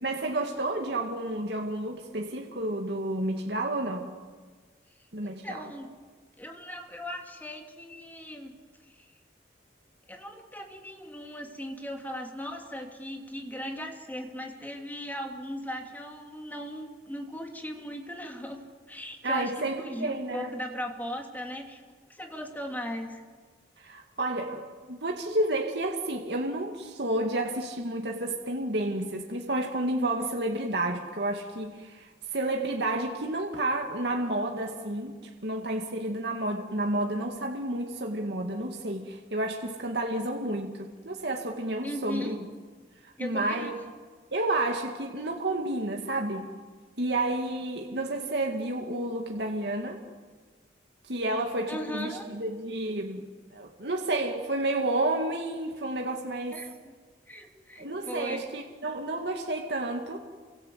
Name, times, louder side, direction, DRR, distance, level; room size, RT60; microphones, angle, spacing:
voice 1, 0.0-4.1 5.1-5.6 19.2-20.5 23.8-42.4 43.0-43.7 44.3-46.5 47.0-50.0 51.0-56.6 57.8-60.3, right 1 dB, 60° right, 2 dB, 2.1 m, -31 dB
voice 2, 5.2-5.9 6.4-8.6 8.9-9.1 10.1-21.8 22.1-23.2 41.8-42.4 43.2-43.7 51.7-52.2 56.5-56.9 57.3-58.4, equal, 10° left, 3 dB, 3.0 m, -38 dB
29.0 x 25.0 x 8.2 m, 1.5 s
head